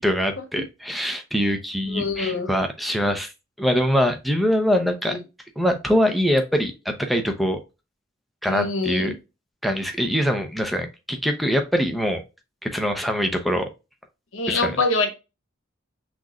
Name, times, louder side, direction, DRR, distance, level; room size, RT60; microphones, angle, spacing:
voice 1, 0.0-3.3 3.6-5.2 5.6-7.6 8.4-9.1 9.6-12.2 12.6-13.7 14.5-14.7, equal, ahead, 0.7 m, -23 dB
voice 2, 1.9-2.5 5.1-5.2 8.5-9.1 14.3-15.1, left 3 dB, 85° left, 1.2 m, -25 dB
6.1 x 3.1 x 2.4 m
head